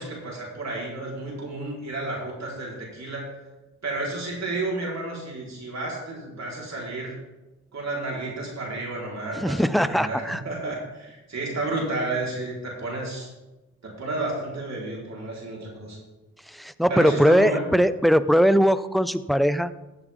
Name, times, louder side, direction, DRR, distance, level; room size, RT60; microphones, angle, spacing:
voice 1, 0.0-3.4 3.8-7.2 7.7-13.3 13.8-16.0 16.9-17.7, right 2 dB, 55° right, -3 dB, 4.4 m, -31 dB
voice 2, 9.3-10.4 16.5-19.7, equal, ahead, 14 dB, 0.5 m, -20 dB
15.5 x 7.9 x 3.7 m, 1.1 s
cardioid pair, 65°, 33 cm